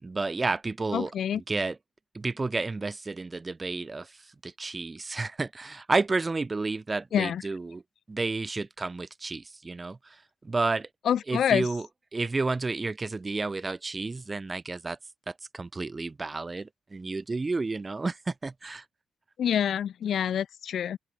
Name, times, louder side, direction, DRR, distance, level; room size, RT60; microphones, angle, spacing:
voice 1, 0.0-1.8 2.1-7.8 8.1-10.9 11.3-11.9 12.1-15.0 15.3-18.8, right 3 dB, 20° right, 1.1 m, -31 dB
voice 2, 0.9-1.4 7.1-7.4 11.1-11.7 19.4-21.0, left 9 dB, 60° left, 1.4 m, -26 dB
open air
wide cardioid pair, 170°, 0 cm